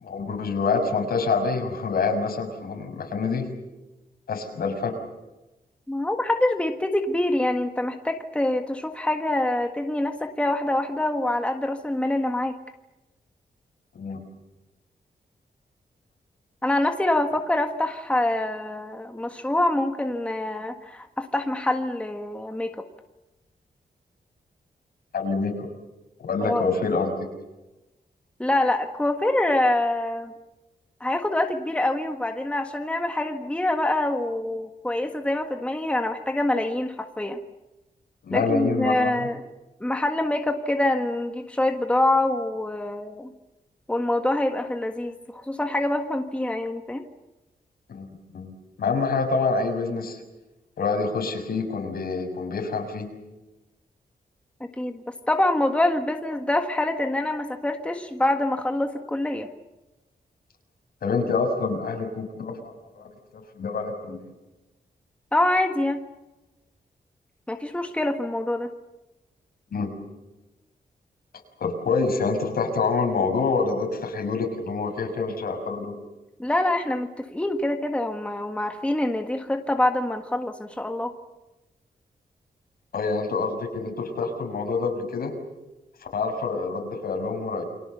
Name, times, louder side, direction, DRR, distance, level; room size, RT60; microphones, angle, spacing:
voice 1, 0.0-3.5 4.3-4.9 13.9-14.2 25.1-25.7 26.2-27.1 38.2-39.1 47.9-48.1 48.3-48.5 48.8-50.2 50.8-53.1 61.0-64.2 69.7-69.9 71.6-75.9 82.9-85.3 86.1-87.6, left 4 dB, 75° left, 3 dB, 6.4 m, -26 dB
voice 2, 5.9-12.5 16.6-22.7 26.4-26.6 28.4-30.3 31.0-37.4 38.3-39.4 39.8-43.3 43.9-47.0 54.8-55.0 55.3-59.5 65.3-66.0 67.5-68.7 76.4-81.1, left 1 dB, 5° left, 5 dB, 1.6 m, -25 dB
29.5 x 25.0 x 7.0 m, 1.0 s
wide cardioid pair, 165°, 16 cm